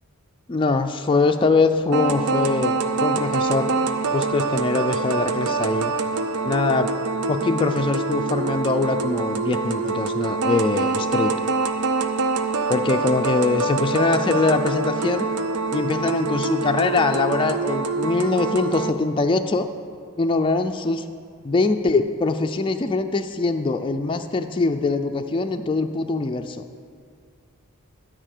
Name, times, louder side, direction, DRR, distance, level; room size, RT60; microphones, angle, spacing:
voice 1, 0.5-3.7 4.1-5.9 6.4-6.9 7.3-11.3 12.7-15.3 15.7-19.7 20.2-21.0 21.4-26.6, left 3 dB, 25° left, 6 dB, 0.3 m, -22 dB
sound 1, 1.9-18.9, right 4 dB, 85° right, 0.5 m, -25 dB
12.5 x 4.9 x 6.6 m, 2.1 s
head